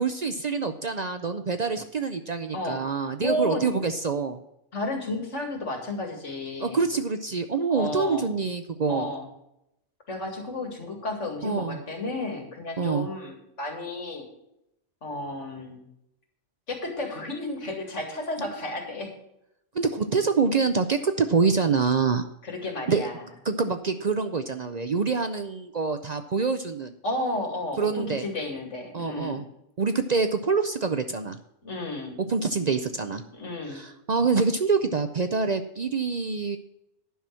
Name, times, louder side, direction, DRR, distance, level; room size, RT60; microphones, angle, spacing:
voice 1, 0.0-4.4 6.6-9.1 11.4-11.8 12.8-13.1 19.7-22.2 22.9-23.1 23.4-26.9 27.8-28.3 28.9-29.4 29.8-31.4 32.3-33.2 33.7-36.6, right 5 dB, 45° right, 8 dB, 0.6 m, -26 dB
voice 2, 3.2-3.6 4.7-6.8 7.7-8.3 8.9-9.3 10.1-14.3 15.0-15.8 16.7-19.1 22.4-23.2 27.0-29.4 31.6-32.2 33.3-33.8, left 1 dB, 85° left, 2 dB, 2.6 m, -32 dB
10.5 x 5.9 x 7.4 m, 0.82 s
omnidirectional pair, 1.2 m